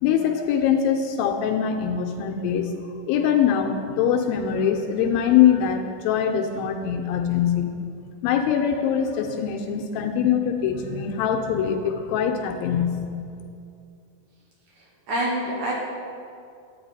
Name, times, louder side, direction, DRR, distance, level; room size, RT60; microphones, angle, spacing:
voice 1, 0.0-7.8 8.2-13.1, left 8 dB, 80° left, 4 dB, 2.2 m, -23 dB
voice 2, 14.8-15.7, right 1 dB, 65° right, -3 dB, 2.1 m, -27 dB
10.0 x 8.7 x 4.1 m, 2.4 s
omnidirectional pair, 4.4 m